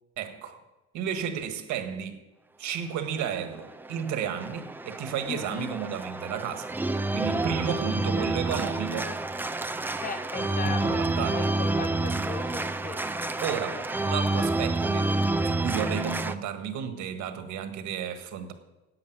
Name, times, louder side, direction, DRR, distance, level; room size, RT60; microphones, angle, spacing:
voice 1, 0.2-0.6 0.9-2.2 2.6-6.7 7.1-9.1 10.6-11.4 13.4-15.1 15.4-18.5, right 8 dB, 70° right, 7 dB, 1.6 m, -32 dB
Organ, 3.2-16.3, right 2 dB, 5° right, 0.4 m, -29 dB
voice 2, 5.3-5.7 10.0-13.8, left 6 dB, 30° left, 9 dB, 1.0 m, -38 dB
11.0 x 8.6 x 9.4 m, 1.1 s
cardioid pair, 155°, 30 cm